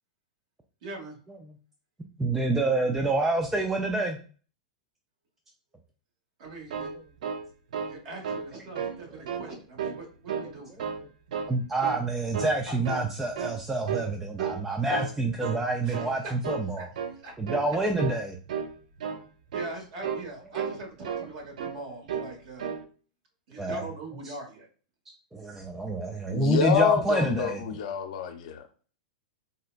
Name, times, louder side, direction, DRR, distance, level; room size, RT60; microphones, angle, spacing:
voice 1, 0.8-1.2 6.4-6.9 7.9-10.7 12.3-12.7 15.8-16.3 16.8-16.9 17.2-17.3 19.5-22.7 23.5-24.7, right 2 dB, 55° right, 0 dB, 1.3 m, -41 dB
voice 2, 2.2-4.2 11.5-16.9 17.4-18.4 23.6-23.8 24.3-24.4 25.3-27.6, right 2 dB, 10° right, 2 dB, 0.3 m, -27 dB
sound 1, 6.5-8.0 8.2-8.5 8.7-9.4 9.8-10.5 10.8-11.5 11.8-12.1 12.3-13.1 13.4-13.6 13.9-14.1 14.4-15.1 15.4-15.6 15.9-16.2 16.4-16.7 16.9-17.2 17.5-17.7 18.0-18.2 18.5-18.7 19.0-19.2 19.5-19.8 20.0-20.3 20.5-21.3 21.6-21.8 22.1-22.3 22.6-22.8, right 7 dB, 75° right, 0.5 m, -33 dB
voice 3, 26.3-28.8, left 8 dB, 65° left, 5 dB, 0.6 m, -27 dB
3.8 x 2.2 x 2.4 m, 0.39 s
hypercardioid pair, 130°, 4 cm